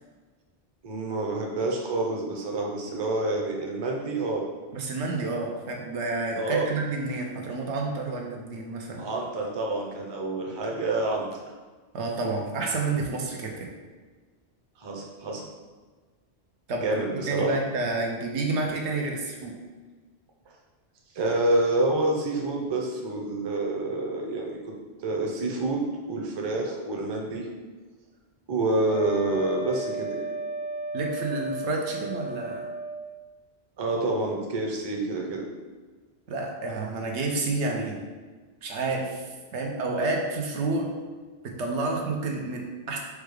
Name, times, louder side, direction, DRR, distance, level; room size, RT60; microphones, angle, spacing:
voice 1, 0.8-4.4 6.4-6.7 9.0-11.3 14.8-15.4 16.8-17.5 21.1-24.6 25.0-25.8 26.1-27.5 28.5-30.2 33.8-35.4, right 2 dB, 30° right, -1 dB, 0.5 m, -28 dB
voice 2, 4.7-9.1 11.9-13.7 16.7-19.6 30.9-32.6 36.3-38.0 38.6-39.3 39.5-40.9 41.4-43.0, right 3 dB, 90° right, 1 dB, 1.0 m, -29 dB
Wind instrument woodwind instrument, 28.8-33.1, right 1 dB, 75° left, 0.8 m, -34 dB
4.6 x 2.3 x 4.8 m, 1.4 s
omnidirectional pair, 1.1 m